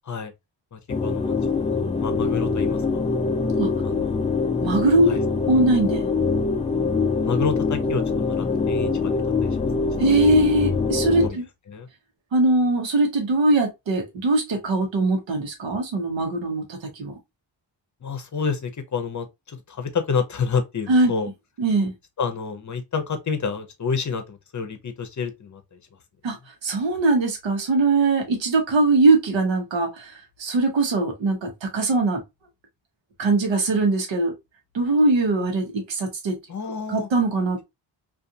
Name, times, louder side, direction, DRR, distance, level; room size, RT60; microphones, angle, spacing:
voice 1, 0.7-3.2 3.8-4.2 5.1-5.2 7.2-9.7 10.0-10.2 11.2-11.4 11.7-11.9 18.0-21.3 22.2-25.8 36.5-37.1, left 5 dB, 40° left, 0.7 m, -29 dB
sound 1, 0.9-11.3, left 4 dB, 15° left, 0.3 m, -24 dB
voice 2, 4.6-5.1 5.5-6.1 10.0-11.4 12.3-17.2 20.9-21.1 21.6-21.9 26.2-26.4 26.6-32.2 33.2-34.3 34.7-36.4 36.9-37.6, right 2 dB, 80° right, 1.0 m, -21 dB
2.5 x 2.5 x 2.6 m
cardioid pair, 85°, 45 cm